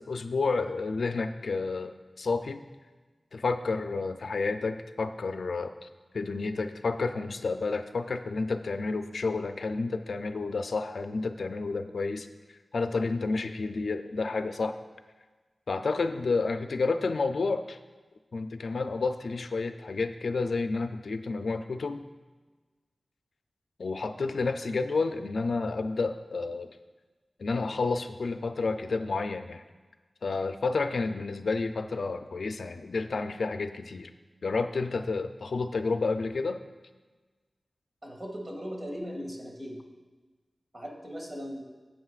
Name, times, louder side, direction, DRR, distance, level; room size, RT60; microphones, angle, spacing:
voice 1, 0.0-2.6 3.3-5.9 6.1-12.3 12.7-14.8 15.7-17.8 18.3-22.0 23.8-26.7 27.4-29.6 30.2-34.1 34.4-36.6, left 3 dB, 80° left, 8 dB, 0.4 m, -30 dB
voice 2, 38.0-39.8 40.7-41.6, equal, 35° right, -1 dB, 2.0 m, -38 dB
14.0 x 8.1 x 2.4 m, 1.3 s
wide cardioid pair, 60°, 0 cm